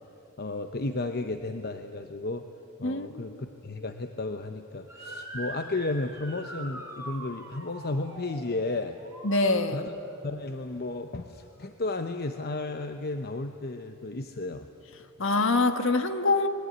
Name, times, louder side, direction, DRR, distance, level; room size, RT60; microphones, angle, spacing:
voice 1, 0.4-2.5 2.8-9.0 9.7-9.9 10.2-14.7, left 2 dB, 45° left, 7 dB, 0.9 m, -33 dB
voice 2, 2.8-3.4 9.2-9.9 15.2-16.5, left 3 dB, 60° left, 8 dB, 1.6 m, -25 dB
Motor vehicle (road) / Siren, 4.9-10.1, right 1 dB, 15° right, 3.3 m, -43 dB
28.0 x 22.0 x 9.5 m, 3.0 s
head